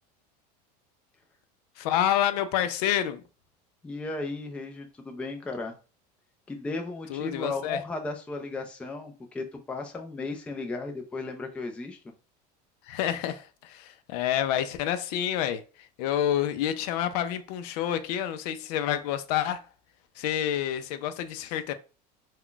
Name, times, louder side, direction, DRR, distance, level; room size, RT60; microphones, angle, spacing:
voice 1, 1.8-3.2 7.1-7.8 12.9-15.6 16.0-19.7 20.2-21.7, left 11 dB, 75° left, 0.4 m, -28 dB
voice 2, 3.8-5.7 6.5-12.0, left 3 dB, 5° left, 0.3 m, -35 dB
2.3 x 2.2 x 3.7 m
supercardioid pair, 150°, 20 cm